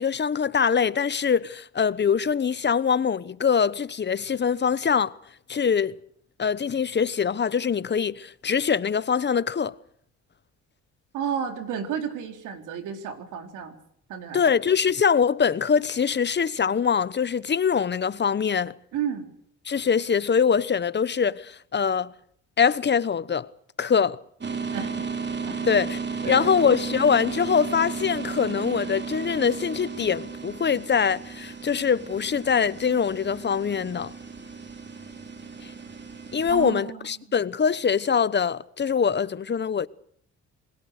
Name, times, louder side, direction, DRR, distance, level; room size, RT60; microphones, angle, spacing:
voice 1, 0.0-5.1 5.5-5.9 6.4-9.8 14.3-18.7 19.7-22.1 22.6-23.5 23.8-24.2 25.6-26.0 26.3-34.1 36.3-39.9, left 6 dB, 35° left, 1.0 m, -23 dB
voice 2, 11.1-13.7 14.1-14.4 18.9-19.3 24.7-24.9 25.5-25.7 26.2-26.5 36.5-37.3, right 8 dB, 90° right, 3.9 m, -32 dB
sound 1, 24.4-36.6, right 5 dB, 35° right, 3.5 m, -34 dB
27.0 x 21.5 x 6.6 m
cardioid pair, 90°, 30 cm